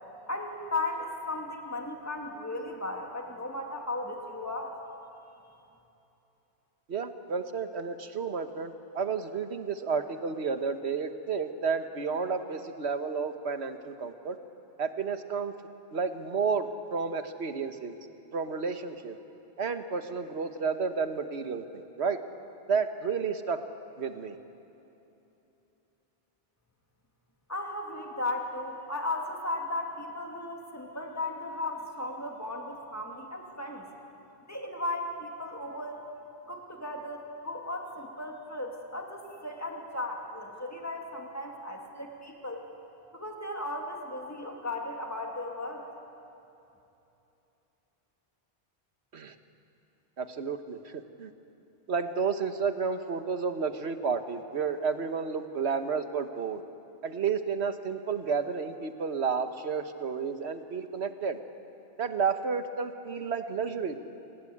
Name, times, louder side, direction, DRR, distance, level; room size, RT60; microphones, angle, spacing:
voice 1, 0.3-4.8 27.5-33.9 34.5-36.0 36.5-42.6 43.1-45.9, left 2 dB, 15° left, 1 dB, 2.5 m, -36 dB
voice 2, 6.9-14.4 14.8-15.5 15.9-17.9 18.3-19.2 19.6-21.6 22.0-22.2 22.7-23.6 24.0-24.4 49.1-49.3 50.2-50.9 51.2-51.3 51.9-56.6 57.0-61.4 62.0-64.0, right 5 dB, 85° right, 8 dB, 1.5 m, -31 dB
27.0 x 20.5 x 8.7 m, 2.9 s
omnidirectional pair, 1.1 m